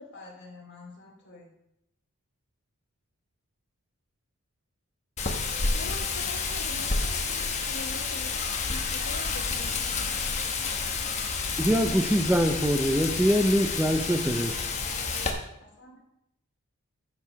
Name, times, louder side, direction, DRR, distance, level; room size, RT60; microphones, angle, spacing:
voice 1, 0.1-1.5 15.6-16.0, left 3 dB, 50° left, -2 dB, 2.4 m, -48 dB
Wind, 5.2-15.3, left 4 dB, 30° left, 1.0 m, -30 dB
voice 2, 5.7-8.4 8.7-10.1, left 2 dB, 80° left, 4 dB, 1.3 m, -43 dB
voice 3, 11.6-14.7, equal, 5° right, 3 dB, 0.5 m, -24 dB
10.5 x 4.8 x 5.7 m, 0.83 s
head